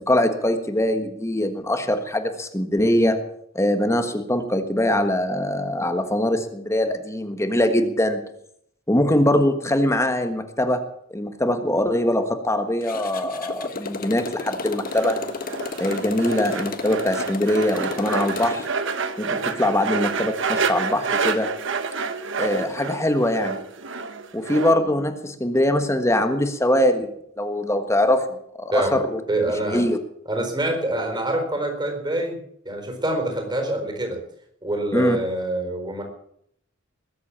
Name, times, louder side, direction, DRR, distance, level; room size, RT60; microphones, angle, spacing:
voice 1, 0.1-3.2 3.5-8.2 8.9-10.8 11.1-15.2 15.8-18.6 19.2-21.5 22.4-23.6 24.3-28.3 28.6-29.2 29.7-30.0 34.9-35.2, left 1 dB, 15° left, 7 dB, 1.4 m, -22 dB
Motorcycle, 12.8-18.7, left 3 dB, 45° left, 1.4 m, -32 dB
sound 1, 14.9-24.8, right 5 dB, 65° right, 1.4 m, -28 dB
voice 2, 29.3-29.9 30.3-32.4 32.6-34.2 34.6-36.0, right 1 dB, 20° right, 4 dB, 4.3 m, -25 dB
21.0 x 8.3 x 7.5 m, 0.69 s
head